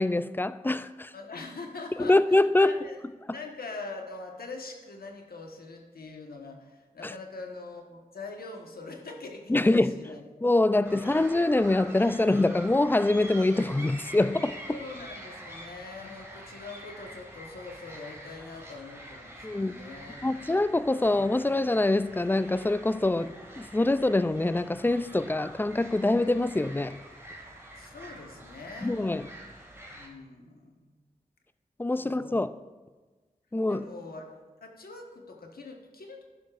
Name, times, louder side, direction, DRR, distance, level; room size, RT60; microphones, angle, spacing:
voice 1, 0.0-1.1 2.0-2.8 7.0-7.1 9.5-9.9 10.4-14.8 19.4-19.8 20.2-27.0 28.8-29.3 31.8-32.5 33.5-33.9, left 2 dB, 15° left, 0.3 m, -25 dB
voice 2, 1.1-3.0 3.3-10.3 14.7-20.3 27.8-29.0 29.9-30.9 32.0-32.5 33.7-34.4 34.6-36.2, left 3 dB, 90° left, 1.3 m, -43 dB
sound 1, 10.8-30.1, right 1 dB, 15° right, 2.3 m, -46 dB
11.5 x 10.5 x 2.5 m
wide cardioid pair, 60°, 15 cm